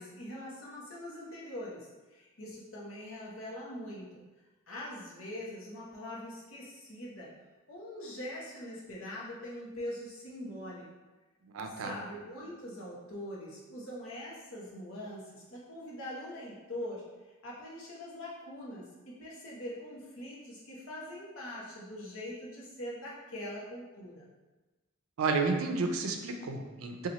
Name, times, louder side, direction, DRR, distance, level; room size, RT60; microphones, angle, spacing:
voice 1, 0.0-4.1 4.7-7.3 7.7-10.9 11.6-17.1 17.4-24.3, left 1 dB, 75° left, -5 dB, 0.9 m, -43 dB
voice 2, 11.5-11.9 25.2-27.1, right 4 dB, 80° right, 4 dB, 0.4 m, -31 dB
2.9 x 2.4 x 3.9 m, 1.2 s
head